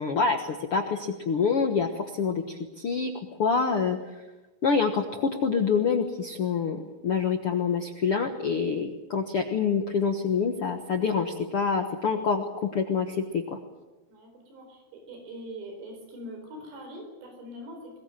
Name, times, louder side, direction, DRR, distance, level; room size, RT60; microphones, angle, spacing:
voice 1, 0.0-3.1 3.4-4.0 4.6-13.6, left 5 dB, 85° left, 5 dB, 1.2 m, -26 dB
voice 2, 14.1-18.0, equal, 90° right, 3 dB, 6.6 m, -42 dB
23.0 x 20.0 x 9.0 m, 1.1 s
omnidirectional pair, 4.9 m